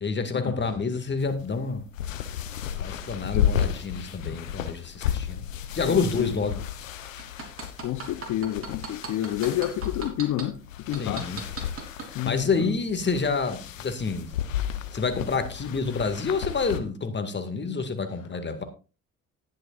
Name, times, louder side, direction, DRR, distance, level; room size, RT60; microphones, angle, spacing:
voice 1, 0.0-1.9 2.7-5.5 5.7-6.6 10.9-11.4 12.0-14.3 14.9-18.6, left 4 dB, 30° left, 2.1 m, -28 dB
sound 1, 1.2-16.8, left 9 dB, 85° left, 0.9 m, -33 dB
voice 2, 5.8-6.3 7.8-10.6 10.9-11.4 12.1-12.7, left 13 dB, 50° left, 1.0 m, -29 dB
sound 2, 7.2-10.4 10.9-12.1 12.6-12.7, right 5 dB, 35° right, 3.2 m, -36 dB
19.5 x 6.7 x 2.5 m
figure-of-eight pair, 55°, 38 cm